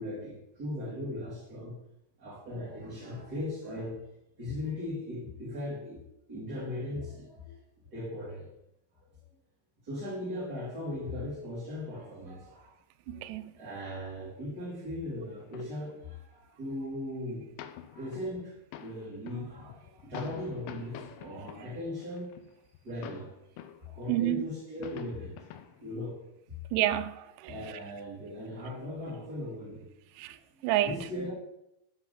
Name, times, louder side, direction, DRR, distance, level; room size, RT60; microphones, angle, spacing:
voice 1, 0.0-1.8 2.2-4.0 4.4-8.5 9.0-9.1 9.8-12.8 13.5-17.5 17.9-22.4 22.8-25.5 25.8-26.6 27.4-29.9 30.5-31.3, left 1 dB, 35° right, 1.7 m, -38 dB
voice 2, 13.1-13.5 24.1-24.4 26.7-27.6 30.2-30.4 30.6-31.0, right 14 dB, 85° right, 2.6 m, -29 dB
sound 1, 15.4-15.8 16.4-16.5 16.7-17.1 17.6-23.9 24.3-24.4 24.6-25.9 26.5-26.6, left 10 dB, 85° left, 3.0 m, -47 dB
8.3 x 6.0 x 5.2 m
omnidirectional pair, 5.1 m